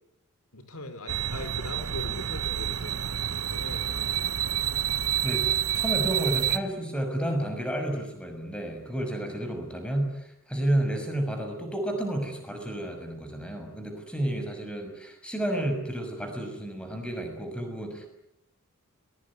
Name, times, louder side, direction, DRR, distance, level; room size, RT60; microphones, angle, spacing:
voice 1, 0.5-3.1 3.5-4.4, left 1 dB, 75° left, 10 dB, 4.4 m, -41 dB
sound 1, 1.1-6.6, right 10 dB, 80° right, 1.0 m, -28 dB
voice 2, 5.7-18.1, right 1 dB, 5° left, 5 dB, 6.2 m, -31 dB
22.5 x 21.5 x 9.8 m, 0.81 s
head